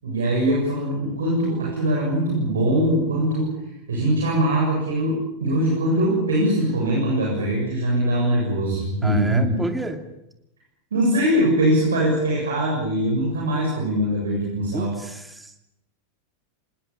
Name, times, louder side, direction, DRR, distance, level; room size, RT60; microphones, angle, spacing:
voice 1, 0.0-3.5 3.9-9.5 10.9-14.9, right 1 dB, 65° right, -2 dB, 7.5 m, -22 dB
voice 2, 9.0-10.0 14.7-15.5, right 2 dB, 5° right, 7 dB, 2.6 m, -30 dB
26.0 x 20.0 x 8.7 m, 0.86 s
figure-of-eight pair, 90°, 0 cm